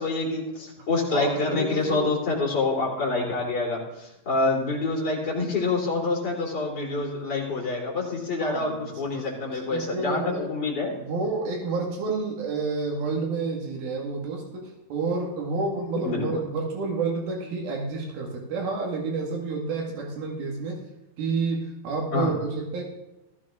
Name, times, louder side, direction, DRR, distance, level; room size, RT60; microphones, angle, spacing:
voice 1, 0.0-10.9 16.0-16.4 22.1-22.3, left 3 dB, 30° left, -2 dB, 3.5 m, -27 dB
voice 2, 1.1-2.1 8.4-10.5 10.9-20.8 21.2-22.8, right 3 dB, 85° right, 0 dB, 3.9 m, -30 dB
15.0 x 14.0 x 3.7 m, 0.96 s
omnidirectional pair, 4.2 m